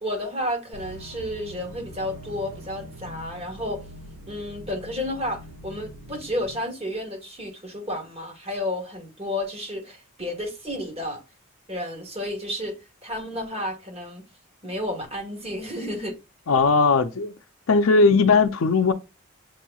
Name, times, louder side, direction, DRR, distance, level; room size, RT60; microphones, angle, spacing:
voice 1, 0.0-3.8 4.3-11.2 11.7-12.7 13.0-14.2 14.6-16.1, left 1 dB, 30° right, 1.4 m, -31 dB
sound 1, 0.7-6.6, equal, 85° right, 3.0 m, -43 dB
voice 2, 16.5-17.3 17.7-18.9, left 4 dB, 70° left, 0.5 m, -18 dB
7.6 x 3.0 x 2.3 m
head